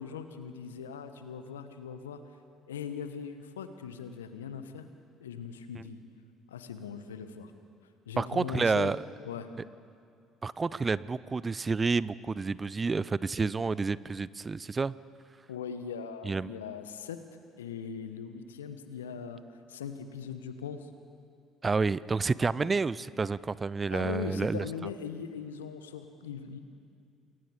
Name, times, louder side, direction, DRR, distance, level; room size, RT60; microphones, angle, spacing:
voice 1, 0.0-2.2 2.7-4.9 5.2-6.0 6.5-7.5 8.1-8.9 9.2-9.5 15.5-17.2 17.6-20.9 22.6-22.7 23.9-26.6, left 7 dB, 85° left, 9 dB, 1.2 m, -40 dB
voice 2, 8.2-9.0 10.4-14.9 16.2-16.5 21.6-24.6, right 4 dB, 30° right, 20 dB, 0.5 m, -29 dB
28.5 x 21.5 x 5.1 m, 2.3 s
hypercardioid pair, 55°, 0 cm